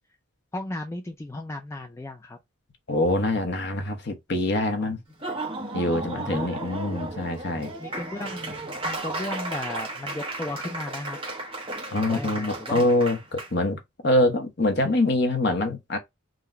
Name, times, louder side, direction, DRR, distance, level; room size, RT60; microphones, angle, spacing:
voice 1, 0.5-2.4 5.9-6.5 7.8-8.6 8.8-11.2 12.0-12.9, left 1 dB, 15° left, 0.3 m, -35 dB
voice 2, 2.9-5.0 5.7-7.7 11.9-16.0, left 1 dB, 50° left, 0.9 m, -24 dB
Laughter / Applause, 5.1-13.5, right 2 dB, 25° right, 0.9 m, -34 dB
3.7 x 2.1 x 4.2 m
head